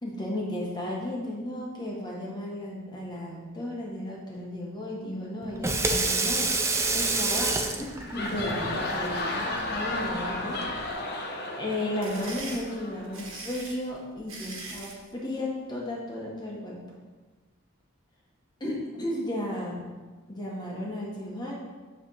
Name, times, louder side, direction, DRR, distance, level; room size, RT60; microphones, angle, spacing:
voice 1, 0.0-6.6 6.9-10.6 11.6-16.8 18.6-19.9 20.3-21.5, left 1 dB, 20° left, -4 dB, 1.3 m, -34 dB
Water tap faucet / Sink (filling or washing), 5.4-10.9, right 3 dB, 15° right, 0.4 m, -29 dB
sound 1, 7.9-13.4, left 2 dB, 55° left, 1.0 m, -33 dB
sound 2, 11.7-15.0, right 3 dB, 85° right, 1.4 m, -41 dB
8.0 x 3.4 x 5.6 m, 1.3 s
head